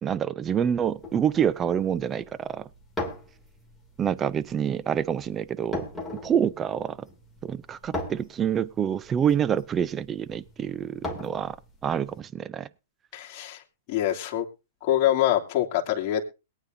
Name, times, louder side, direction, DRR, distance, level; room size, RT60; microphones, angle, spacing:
voice 1, 0.0-2.7 4.0-5.8 6.2-7.1 7.4-11.6 11.8-12.7, right 8 dB, 20° right, 0.6 m, -27 dB
sound 1, 0.8-12.2, left 1 dB, 10° left, 2.8 m, -40 dB
voice 2, 13.1-13.6 13.9-14.4 14.8-16.2, left 12 dB, 40° left, 2.8 m, -25 dB
22.0 x 9.3 x 2.7 m
hypercardioid pair, 125°, 0 cm